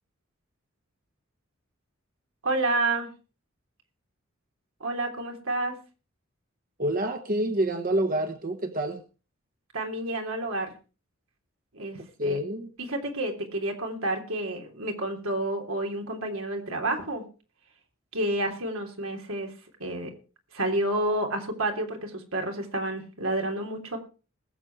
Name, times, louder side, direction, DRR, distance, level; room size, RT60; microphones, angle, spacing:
voice 1, 2.4-3.1 4.8-5.8 9.7-10.7 11.7-12.4 12.9-17.2 18.1-19.5 19.8-20.1 20.5-24.0, right 2 dB, 90° right, 3 dB, 3.4 m, -29 dB
voice 2, 6.8-9.0 12.0-12.7, right 1 dB, 45° right, 6 dB, 1.1 m, -28 dB
20.0 x 7.7 x 4.7 m, 0.34 s
head